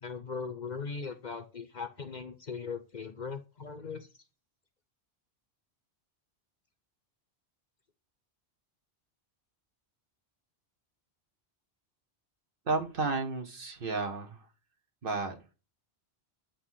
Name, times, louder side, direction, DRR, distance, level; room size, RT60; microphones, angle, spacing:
voice 1, 0.0-4.1, left 5 dB, 45° left, 0.8 m, -39 dB
voice 2, 12.7-14.4 15.0-15.4, right 3 dB, 55° right, 1.2 m, -32 dB
8.4 x 2.9 x 5.6 m
omnidirectional pair, 1.1 m